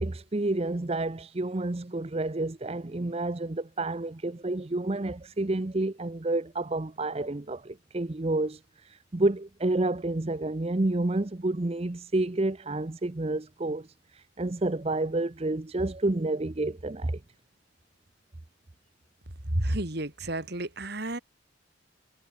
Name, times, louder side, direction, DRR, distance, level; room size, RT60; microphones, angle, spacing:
voice 1, 0.0-17.2, right 2 dB, 30° right, 0.7 m, -29 dB
voice 2, 19.5-21.2, right 1 dB, 50° right, 2.7 m, -31 dB
head